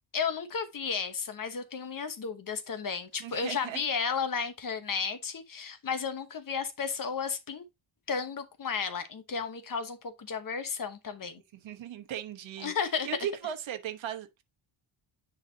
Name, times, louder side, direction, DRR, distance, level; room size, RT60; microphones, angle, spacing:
voice 1, 0.1-7.6 8.1-11.4 12.6-13.1, left 6 dB, 40° left, 1.1 m, -33 dB
voice 2, 3.2-3.8 11.5-12.7 13.0-14.4, right 9 dB, 65° right, 1.2 m, -37 dB
9.8 x 4.1 x 2.8 m
wide cardioid pair, 150°, 50 cm